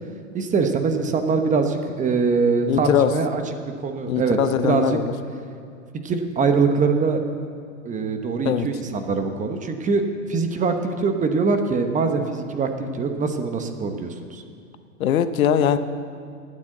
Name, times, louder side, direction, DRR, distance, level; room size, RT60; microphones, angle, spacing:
voice 1, 0.3-3.4 3.8-5.0 6.0-7.2 7.8-14.4, right 4 dB, 20° right, 6 dB, 1.0 m, -23 dB
voice 2, 2.7-3.1 4.1-5.1 8.4-8.7 15.0-15.8, left 9 dB, 80° left, 12 dB, 0.9 m, -21 dB
11.5 x 9.5 x 7.8 m, 2.3 s
hypercardioid pair, 125°, 41 cm